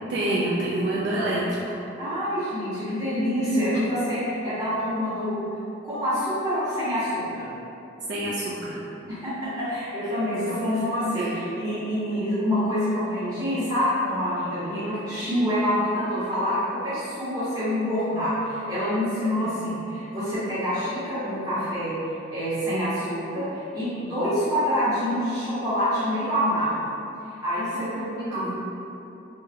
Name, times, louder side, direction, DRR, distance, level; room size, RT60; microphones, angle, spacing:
voice 1, 0.1-1.8 3.4-3.5 8.1-8.8 10.0-10.8 11.1-11.4 27.7-28.5, right 1 dB, 60° right, -6 dB, 0.3 m, -28 dB
voice 2, 2.0-5.4 5.8-7.5 9.1-21.9 22.3-26.9 27.4-27.9 28.3-28.5, equal, 20° right, -13 dB, 1.2 m, -26 dB
3.6 x 2.1 x 2.7 m, 2.8 s
head